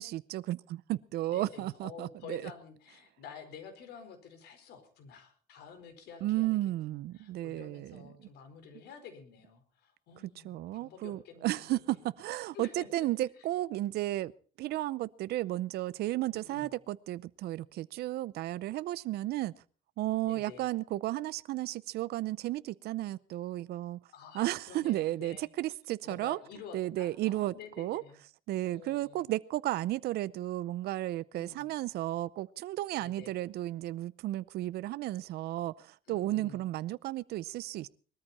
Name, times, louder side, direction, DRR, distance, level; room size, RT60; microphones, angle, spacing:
voice 1, 0.0-2.5 6.2-8.0 10.4-14.3 14.6-19.5 20.0-24.0 24.3-26.4 26.7-28.0 28.5-37.9, right 15 dB, 70° right, 0.6 m, -33 dB
voice 2, 1.3-6.5 6.9-12.0 12.5-13.1 16.3-16.7 20.2-20.7 24.1-25.5 26.0-28.2 28.6-29.3 31.3-31.7 33.0-33.3 36.1-36.6, left 6 dB, 75° left, 4.6 m, -50 dB
20.5 x 13.5 x 4.3 m
cardioid pair, 110°, 17 cm